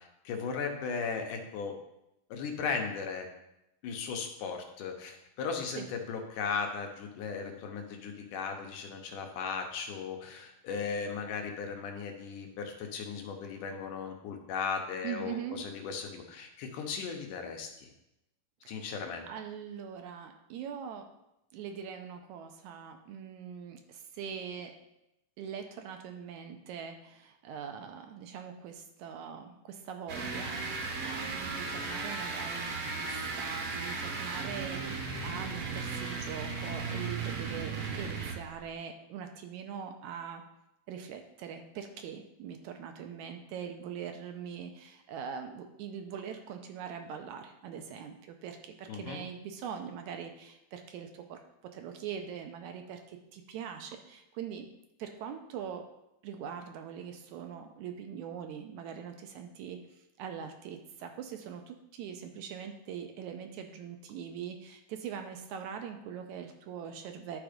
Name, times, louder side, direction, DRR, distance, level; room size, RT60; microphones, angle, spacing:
voice 1, 0.2-1.8 2.3-3.3 3.8-17.9 18.7-19.2 48.9-49.2, left 5 dB, 80° left, 3 dB, 2.5 m, -37 dB
voice 2, 15.0-15.6 18.6-18.9 19.2-21.1 21.5-24.8 25.4-40.4 40.9-54.7 55.0-55.9 56.2-67.4, right 7 dB, 75° right, 5 dB, 2.0 m, -42 dB
sound 1, 30.1-38.6, right 4 dB, 60° right, 1.6 m, -36 dB
11.0 x 3.9 x 5.1 m, 0.87 s
omnidirectional pair, 3.7 m